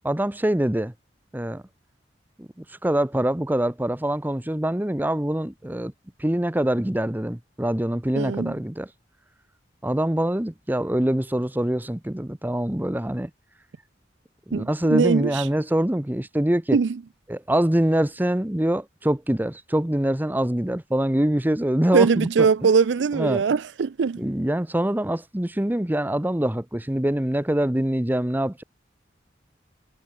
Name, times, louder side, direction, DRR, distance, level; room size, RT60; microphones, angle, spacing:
voice 1, 0.0-0.9 1.3-1.6 2.4-5.9 6.2-8.9 9.8-13.3 14.5-16.8 17.3-22.5 23.1-23.4 24.2-28.6, right 1 dB, 10° right, 0.8 m, -24 dB
voice 2, 8.2-8.5 14.5-15.4 16.7-17.0 21.9-24.2, right 5 dB, 75° right, 0.4 m, -21 dB
head